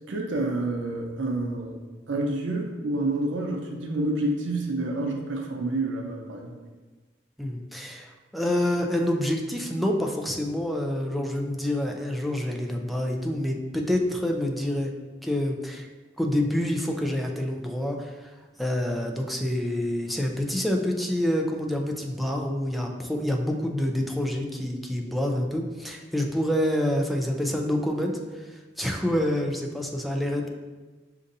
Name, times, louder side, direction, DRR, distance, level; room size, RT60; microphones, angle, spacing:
voice 1, 0.1-1.8 2.1-6.6, right 2 dB, 85° right, 1 dB, 0.5 m, -28 dB
voice 2, 7.4-14.9 15.2-15.9 16.2-30.5, left 1 dB, ahead, 1 dB, 0.4 m, -27 dB
6.4 x 2.5 x 2.6 m, 1.3 s
head